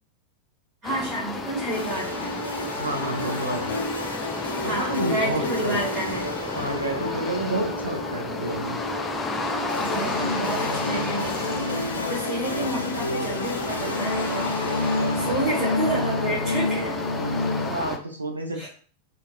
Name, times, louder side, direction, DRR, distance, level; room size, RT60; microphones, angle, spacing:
sound 1, 0.8-18.0, left 3 dB, 15° left, 0.4 m, -32 dB
voice 1, 0.8-2.4 4.6-6.3 7.4-7.6 9.8-14.5 15.1-16.9 18.5-18.7, right 1 dB, 30° right, -5 dB, 1.1 m, -30 dB
sound 2, 1.7-17.7, left 2 dB, 75° left, 0.4 m, -30 dB
voice 2, 2.8-3.8 4.6-5.8 6.5-8.8 17.4-18.7, right 1 dB, 80° right, 2 dB, 0.6 m, -30 dB
2.8 x 2.6 x 2.2 m, 0.43 s
figure-of-eight pair, 90°, 0 cm